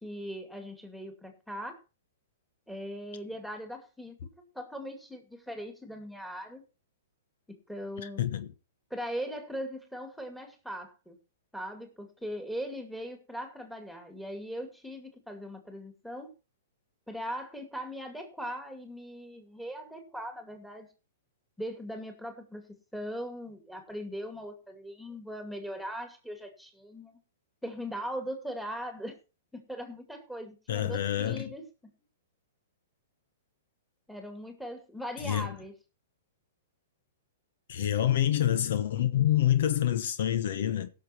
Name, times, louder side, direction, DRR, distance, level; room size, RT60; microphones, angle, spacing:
voice 1, 0.0-1.8 2.7-6.6 7.5-8.2 8.9-11.2 11.5-16.3 17.1-20.9 21.6-27.2 27.6-29.2 29.5-31.9 34.1-35.8, equal, ahead, 2.4 m, -40 dB
voice 2, 8.0-8.5 30.7-31.5 35.2-35.5 37.7-40.9, left 11 dB, 65° left, 1.1 m, -27 dB
16.5 x 6.6 x 4.5 m
hypercardioid pair, 130°, 0 cm